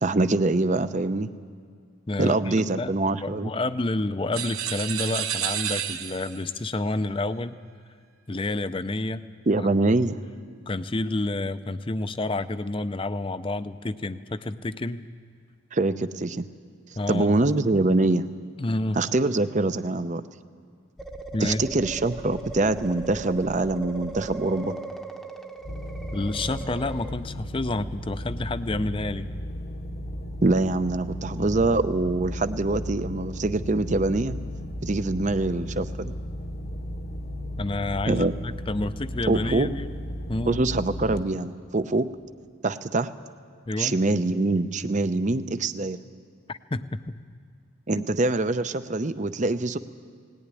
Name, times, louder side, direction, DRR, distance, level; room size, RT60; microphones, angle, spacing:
voice 1, 0.0-1.3 2.2-3.5 9.5-10.2 15.7-16.5 17.1-18.3 19.0-20.2 21.4-24.8 30.4-34.4 34.8-36.1 38.1-38.3 39.3-39.7 40.5-42.1 42.6-43.1 43.8-46.0 47.9-49.8, right 2 dB, 35° right, 12 dB, 0.6 m, -24 dB
voice 2, 2.1-2.9 3.2-7.6 8.3-9.2 9.6-9.7 10.7-15.1 17.0-17.4 18.6-19.0 21.3-21.6 26.1-29.3 37.6-39.9 40.3-40.6 43.7-44.0 46.5-47.2 48.0-48.1, left 2 dB, 25° left, 12 dB, 0.5 m, -29 dB
sound 1, 4.3-6.5, right 10 dB, 85° right, 0.9 m, -30 dB
sound 2, 21.0-27.1, right 2 dB, ahead, 0.9 m, -38 dB
sound 3, 25.6-41.2, equal, 50° left, 1.0 m, -35 dB
18.5 x 17.5 x 9.8 m, 2.1 s
head